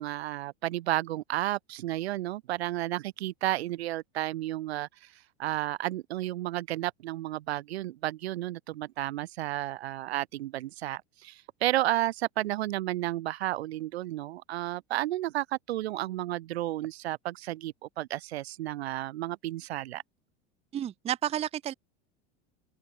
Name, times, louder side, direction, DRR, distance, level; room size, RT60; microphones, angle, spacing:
voice 1, 0.0-20.0, right 15 dB, 90° right, 1.7 m, -32 dB
voice 2, 20.7-21.7, right 11 dB, 20° right, 0.6 m, -31 dB
open air
supercardioid pair, 130°, 31 cm